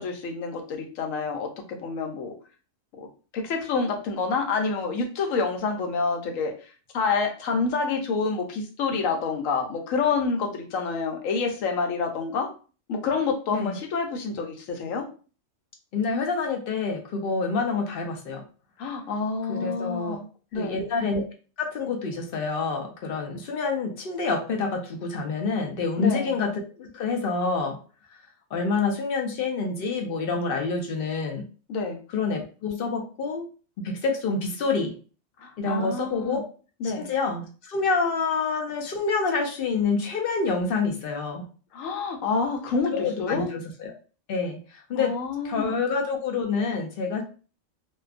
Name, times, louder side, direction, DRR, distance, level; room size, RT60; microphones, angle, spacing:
voice 1, 0.0-2.3 3.3-6.5 6.9-12.5 12.9-15.1 18.8-20.3 20.5-20.8 26.0-26.3 31.7-32.0 35.4-36.4 36.8-37.1 41.7-43.5 45.0-45.8, left 4 dB, 85° left, 3 dB, 1.0 m, -28 dB
voice 2, 15.9-18.4 19.5-20.2 20.5-21.2 21.6-27.8 28.5-31.5 32.1-33.5 33.8-35.0 35.6-36.5 36.8-41.5 42.9-43.9 44.3-45.2 45.4-47.2, left 4 dB, 65° left, 2 dB, 0.6 m, -27 dB
2.5 x 2.2 x 2.4 m, 0.37 s
omnidirectional pair, 1.3 m